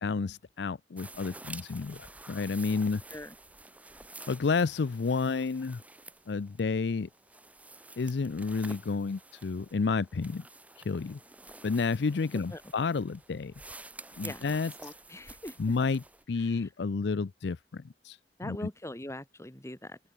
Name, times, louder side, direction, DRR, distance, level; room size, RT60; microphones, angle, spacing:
voice 1, 0.0-3.0 4.3-5.8 6.3-7.1 8.0-10.4 10.9-11.2 11.6-13.5 14.2-14.7 15.6-18.6, left 4 dB, 70° left, 0.5 m, -30 dB
sound 1, 1.0-16.2, right 2 dB, 10° right, 2.1 m, -50 dB
voice 2, 14.8-15.6 16.4-16.7 18.4-20.0, left 1 dB, 15° left, 2.9 m, -42 dB
open air
head